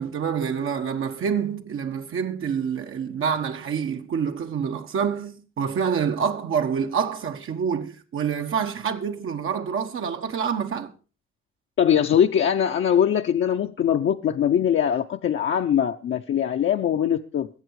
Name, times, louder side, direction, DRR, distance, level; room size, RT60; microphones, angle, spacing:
voice 1, 0.0-10.9, right 7 dB, 90° right, 1.2 m, -27 dB
voice 2, 11.8-17.5, left 9 dB, 75° left, 0.7 m, -22 dB
21.5 x 8.2 x 4.7 m
wide cardioid pair, 135°, 21 cm